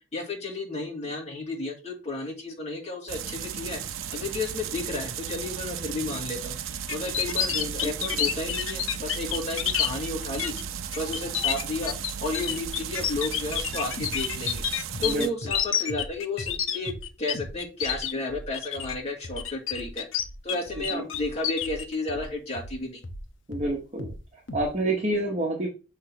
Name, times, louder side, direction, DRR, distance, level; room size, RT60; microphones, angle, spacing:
voice 1, 0.1-3.8 4.1-6.6 6.9-10.5 10.9-11.9 12.2-14.6 15.0-16.9 17.2-20.1 20.4-23.0, left 2 dB, 30° left, -1 dB, 2.1 m, -32 dB
sound 1, 3.1-15.3, right 8 dB, 80° right, 0.6 m, -35 dB
sound 2, 6.9-9.9 10.4-10.6 10.9-17.3 17.6-18.1 18.5-18.9 19.4-20.6 20.8-21.8, left 9 dB, 85° left, 0.8 m, -28 dB
voice 2, 7.5-7.9 15.0-15.3 20.9-21.0 23.5-25.7, right 1 dB, 35° right, -1 dB, 1.2 m, -29 dB
sound 3, 13.0-13.2 13.5-15.6 15.9-16.1 16.4-16.6 16.9-17.1 17.3-17.6 17.8-23.3 23.5-24.2 24.5-24.7, equal, 65° left, 0.9 m, -39 dB
6.4 x 3.3 x 5.9 m, 0.31 s
head